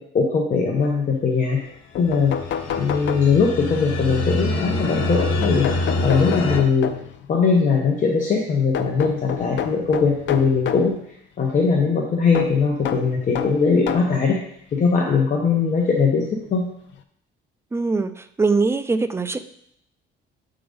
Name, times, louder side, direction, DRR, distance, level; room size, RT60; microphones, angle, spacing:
voice 1, 0.1-1.6 2.0-2.3 2.8-5.7 6.0-6.9 7.3-10.9 11.4-14.4 14.7-16.6, left 5 dB, 40° left, -1 dB, 1.0 m, -20 dB
sound 1, 1.6-1.7 1.9-3.7 5.2-7.3 8.7-11.0 12.3-14.2 15.1-15.2 16.5-16.6 16.9-17.0, left 8 dB, 65° left, 0.6 m, -29 dB
sound 2, 2.1-6.6, left 1 dB, 85° left, 1.1 m, -25 dB
voice 2, 17.7-19.4, right 4 dB, 15° right, 10 dB, 0.3 m, -22 dB
7.7 x 3.8 x 5.2 m, 0.71 s
cardioid pair, 150°, 21 cm